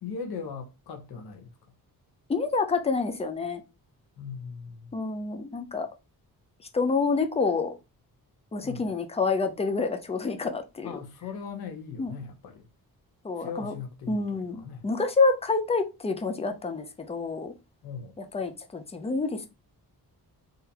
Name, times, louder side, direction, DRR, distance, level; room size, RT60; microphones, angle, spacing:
voice 1, 0.0-1.5 4.2-4.9 8.6-8.9 10.8-12.7 13.4-14.8 17.8-18.1, left 6 dB, 80° left, 1.0 m, -39 dB
voice 2, 2.3-3.6 4.9-5.9 6.7-7.7 8.5-11.0 12.0-12.2 13.2-13.7 14.1-17.5 18.2-19.5, left 4 dB, 15° left, 0.4 m, -28 dB
3.8 x 2.8 x 2.8 m
wide cardioid pair, 165°, 37 cm